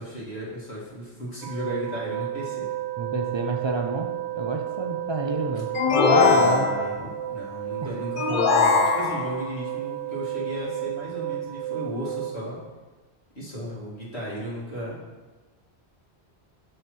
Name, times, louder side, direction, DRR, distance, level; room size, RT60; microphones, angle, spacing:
voice 1, 0.0-2.7 6.1-12.6 13.4-15.0, equal, 70° left, -6 dB, 2.4 m, -35 dB
sound 1, 1.4-12.3, right 14 dB, 75° right, 0.9 m, -33 dB
voice 2, 3.0-6.7 7.8-8.0, right 3 dB, 40° right, 4 dB, 0.4 m, -29 dB
sound 2, 5.7-7.1 8.2-9.5, left 4 dB, 55° left, 0.8 m, -21 dB
6.4 x 4.4 x 6.1 m, 1.2 s
omnidirectional pair, 1.1 m